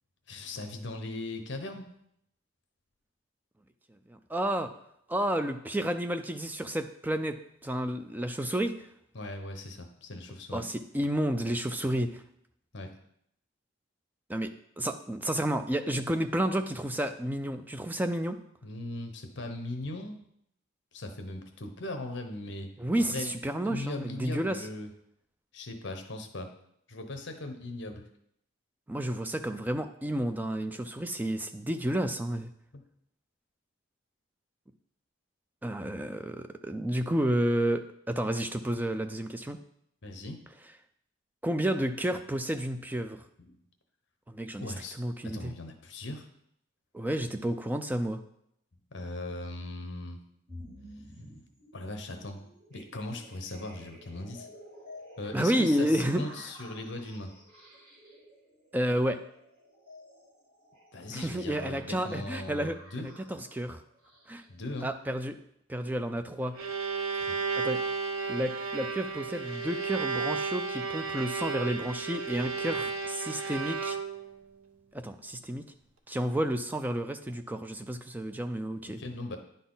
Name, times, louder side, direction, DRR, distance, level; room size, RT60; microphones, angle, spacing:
voice 1, 0.3-1.8 9.1-10.7 12.7-13.0 18.6-20.2 20.9-22.7 23.1-23.3 23.6-24.9 25.5-26.5 26.9-28.0 32.7-32.8 40.0-40.4 43.4-43.6 44.6-45.0 45.2-46.2 48.9-50.2 51.7-54.5 55.2-57.3 60.9-63.1 64.5-64.9 67.1-67.5 78.8-79.4, left 2 dB, 55° left, 5 dB, 0.9 m, -39 dB
voice 2, 4.1-4.7 5.1-8.9 10.5-12.2 14.3-14.5 14.8-18.4 22.8-24.7 28.9-32.5 35.6-39.6 41.4-43.3 44.3-45.5 46.9-48.2 55.3-56.2 58.7-59.2 61.1-63.8 64.3-64.4 64.8-65.4 65.7-66.6 67.6-67.8 68.3-74.0 74.9-75.6 76.1-79.0, right 1 dB, 10° right, 8 dB, 0.3 m, -31 dB
sound 1, 50.5-64.5, equal, 40° right, 3.2 m, -52 dB
Bowed string instrument, 66.3-74.4, right 5 dB, 85° right, 0.7 m, -33 dB
10.0 x 4.1 x 3.9 m, 0.73 s
head